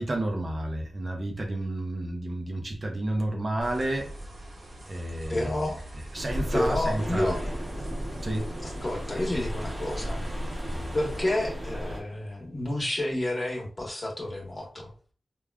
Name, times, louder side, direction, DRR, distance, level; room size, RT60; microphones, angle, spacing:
voice 1, 0.0-4.1 4.9-5.5 6.1-7.3 8.2-8.5, right 1 dB, 45° right, 0.7 m, -30 dB
sound 1, 3.6-11.2, right 1 dB, 85° right, 1.0 m, -42 dB
voice 2, 5.3-5.8 6.5-7.4 8.6-10.2 10.9-14.9, left 1 dB, 30° left, 1.1 m, -30 dB
sound 2, 6.2-12.0, equal, 20° right, 1.1 m, -34 dB
3.5 x 2.3 x 2.2 m
cardioid pair, 65°, 0 cm